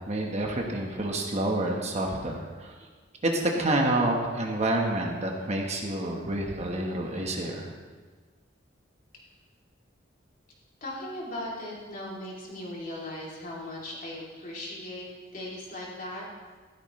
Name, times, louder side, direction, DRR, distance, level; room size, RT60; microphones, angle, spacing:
voice 1, 0.1-2.7 3.2-7.7, right 1 dB, 35° right, 1 dB, 1.3 m, -28 dB
voice 2, 10.8-15.1 15.3-16.3, left 1 dB, 45° left, -5 dB, 3.1 m, -38 dB
14.0 x 12.5 x 3.2 m, 1.4 s
head